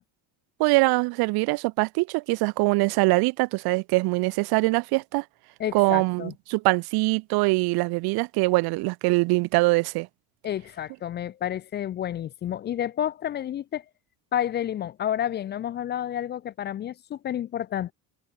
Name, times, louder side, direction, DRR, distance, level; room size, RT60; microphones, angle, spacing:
voice 1, 0.6-5.2 5.7-10.1, right 25 dB, 85° right, 1.1 m, -23 dB
voice 2, 5.6-6.3 10.4-13.8 14.3-17.9, left 10 dB, 30° left, 0.5 m, -30 dB
cardioid pair, 175°, 36 cm